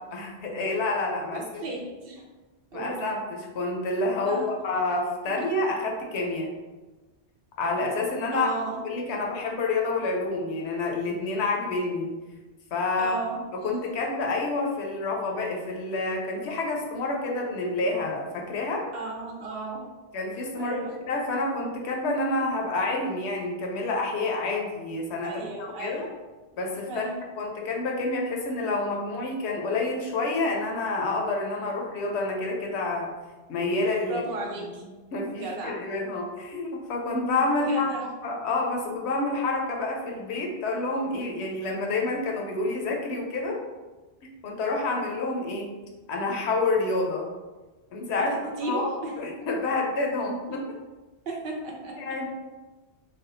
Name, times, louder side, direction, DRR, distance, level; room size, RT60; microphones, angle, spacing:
voice 1, 0.1-1.7 2.7-6.5 7.6-8.5 8.8-12.1 12.7-13.1 13.5-18.8 20.1-26.1 26.6-27.1 27.4-33.1 33.5-34.2 35.1-37.9 38.2-43.6 44.4-45.7 46.1-47.3 47.9-48.3 48.6-48.9 49.2-50.7 52.0-52.3, left 2 dB, 80° left, 0 dB, 0.9 m, -28 dB
voice 2, 1.3-2.3 2.7-3.0 4.2-4.5 8.3-8.8 13.0-13.4 18.9-19.8 20.5-20.9 25.2-26.1 26.9-27.2 34.1-34.8 35.3-35.8 37.6-38.1 48.2-49.1 49.4-49.5 51.3-51.9, right 2 dB, 65° right, -1 dB, 0.7 m, -34 dB
3.3 x 2.3 x 2.6 m, 1.2 s
omnidirectional pair, 1.1 m